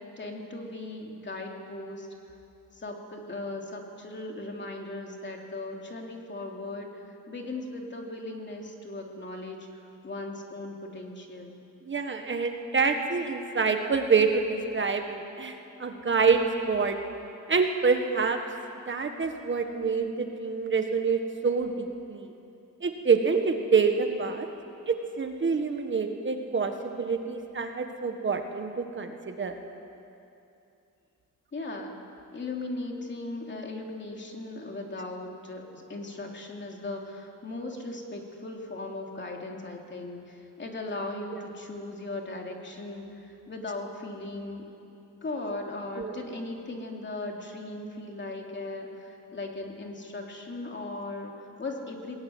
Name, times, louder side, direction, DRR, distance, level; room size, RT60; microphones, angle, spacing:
voice 1, 0.0-2.1 2.7-11.5 31.5-32.0 32.3-44.6 45.2-52.2, left 2 dB, 35° left, 1 dB, 2.9 m, -38 dB
voice 2, 11.8-16.4 16.7-17.0 17.5-18.4 18.9-22.3 22.8-24.5 24.9-29.5 46.0-46.2, right 5 dB, 35° right, 5 dB, 1.5 m, -27 dB
22.0 x 20.0 x 9.4 m, 2.7 s
wide cardioid pair, 150°, 33 cm